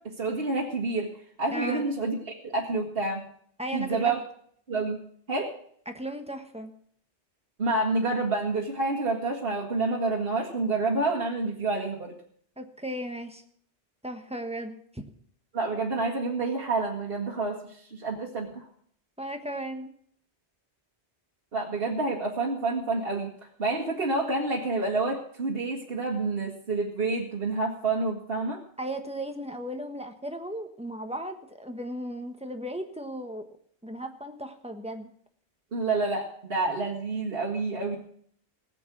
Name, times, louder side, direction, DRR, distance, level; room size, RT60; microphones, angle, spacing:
voice 1, 0.2-1.1 1.4-2.2 2.4-3.3 3.7-4.2 4.7-5.0 5.3-5.5 7.6-12.2 15.5-17.6 17.9-18.7 21.5-23.3 23.6-28.6 35.7-38.0, right 3 dB, 60° right, -2 dB, 1.9 m, -28 dB
voice 2, 1.5-1.9 3.6-4.0 5.9-6.7 12.6-13.4 14.0-15.0 19.2-19.9 28.8-33.4 33.8-35.1, right 1 dB, 5° right, 5 dB, 1.3 m, -36 dB
17.5 x 8.0 x 6.1 m, 0.62 s
omnidirectional pair, 1.1 m